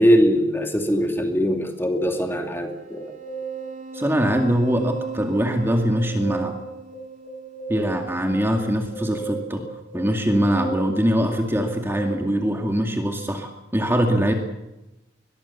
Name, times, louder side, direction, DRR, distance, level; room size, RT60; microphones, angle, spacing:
voice 1, 0.0-3.1, equal, 15° left, 4 dB, 2.7 m, -21 dB
sound 1, 1.9-12.1, right 4 dB, 50° right, 4.4 m, -35 dB
voice 2, 3.9-6.6 7.7-9.6 9.9-14.3, equal, 15° right, 3 dB, 2.2 m, -22 dB
22.0 x 22.0 x 7.1 m, 0.99 s
head